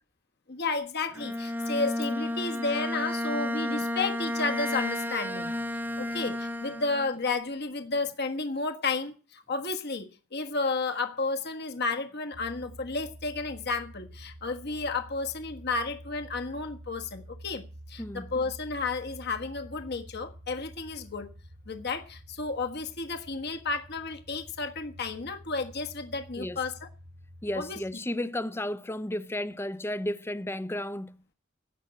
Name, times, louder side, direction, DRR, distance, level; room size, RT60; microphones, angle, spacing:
voice 1, 0.5-5.5 6.0-21.3 21.7-26.9 27.5-27.8, left 3 dB, 55° left, 1.4 m, -32 dB
Bowed string instrument, 1.1-7.2, left 1 dB, 10° right, 0.9 m, -32 dB
sound 1, 12.3-27.9, equal, 60° right, 1.8 m, -49 dB
voice 2, 18.0-18.3 26.4-26.6 27.4-31.2, left 1 dB, 10° left, 0.6 m, -33 dB
16.0 x 6.0 x 8.8 m
head